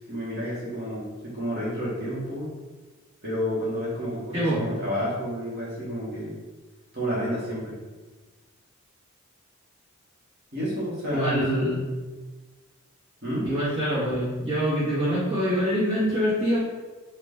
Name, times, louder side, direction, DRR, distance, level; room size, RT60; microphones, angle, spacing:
voice 1, 0.1-2.5 3.2-6.4 6.9-7.8 10.5-11.8 13.2-13.5, equal, 45° right, -6 dB, 1.3 m, -30 dB
voice 2, 11.1-11.8 13.4-16.6, equal, 25° right, -12 dB, 1.5 m, -25 dB
4.0 x 2.5 x 3.4 m, 1.3 s
head